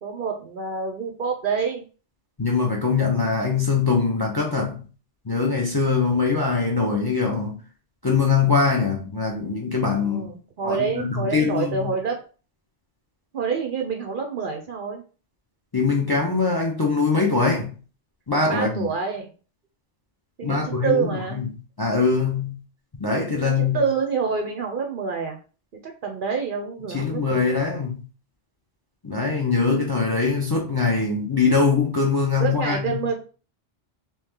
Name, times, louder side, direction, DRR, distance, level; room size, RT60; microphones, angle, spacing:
voice 1, 0.0-1.8 10.0-12.2 13.3-15.0 18.5-19.3 20.4-21.4 23.3-25.4 25.8-27.8 32.4-33.1, right 5 dB, 55° right, 0.6 m, -27 dB
voice 2, 2.4-4.8 5.2-7.6 8.0-10.3 10.6-11.9 15.7-17.7 18.3-18.9 20.4-21.5 21.8-22.6 23.0-23.8 26.9-28.0 29.0-33.0, left 4 dB, 25° left, 0.5 m, -22 dB
3.1 x 2.9 x 3.5 m
omnidirectional pair, 1.2 m